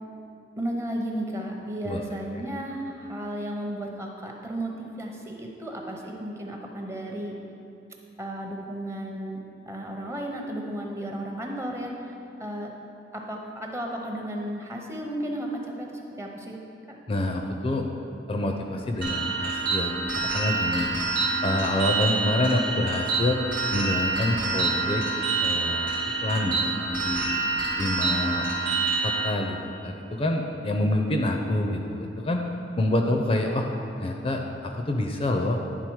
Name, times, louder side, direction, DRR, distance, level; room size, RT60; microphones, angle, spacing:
voice 1, 0.6-7.3 8.2-9.4 9.7-11.9 12.4-12.7 13.1-15.9 16.2-16.6 16.9-17.0, right 1 dB, 15° right, 0 dB, 0.6 m, -33 dB
voice 2, 17.1-17.8 18.3-19.9 20.2-20.9 21.4-23.4 23.7-25.0 25.4-25.9 26.2-27.4 27.7-28.5 29.0-32.4 32.8-33.7 34.0-35.6, left 1 dB, 30° left, 3 dB, 0.4 m, -27 dB
sound 1, 19.0-29.3, right 3 dB, 50° right, 1.1 m, -27 dB
9.9 x 3.7 x 4.6 m, 2.7 s
head